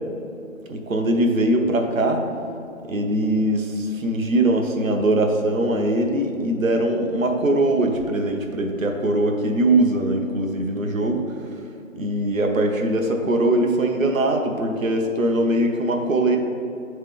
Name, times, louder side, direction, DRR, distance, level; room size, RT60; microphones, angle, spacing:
voice 1, 0.7-2.2 2.9-11.4 11.9-16.4, right 1 dB, 70° right, 3 dB, 0.9 m, -21 dB
8.9 x 3.2 x 3.6 m, 2.7 s
figure-of-eight pair, 170°, 41 cm